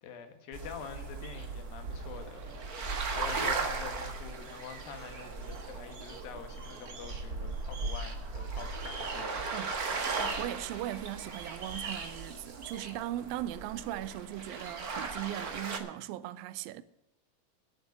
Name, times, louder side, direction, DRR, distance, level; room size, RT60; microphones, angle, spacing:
voice 1, 0.0-2.6 2.9-9.5 10.2-10.3, left 7 dB, 75° left, 3.3 m, -46 dB
sound 1, 0.5-15.8, right 4 dB, 45° right, 1.2 m, -37 dB
voice 2, 10.4-16.8, right 14 dB, 85° right, 2.4 m, -38 dB
11.5 x 7.8 x 9.6 m
omnidirectional pair, 4.2 m